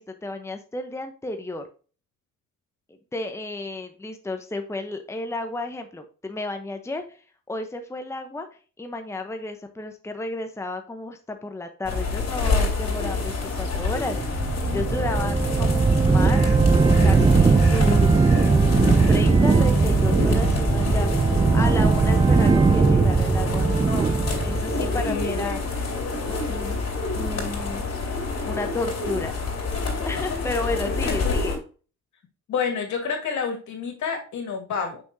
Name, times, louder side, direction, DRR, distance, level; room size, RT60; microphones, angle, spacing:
voice 1, 0.0-1.6 3.1-7.0 7.5-8.5 8.8-16.6 17.0-24.1 24.4-25.6 26.3-26.8 27.1-27.9 28.4-29.3 30.0-31.6, left 2 dB, 10° left, 6 dB, 0.9 m, -32 dB
sound 1, 11.8-31.6, left 3 dB, 55° left, 3.4 m, -28 dB
sound 2, 13.6-25.7, right 4 dB, 15° right, 0.4 m, -19 dB
voice 2, 14.6-15.3 24.7-25.6 30.9-31.3 32.5-35.0, left 6 dB, 70° left, 3 dB, 2.5 m, -30 dB
6.0 x 5.9 x 2.7 m, 0.37 s
cardioid pair, 90°, 30 cm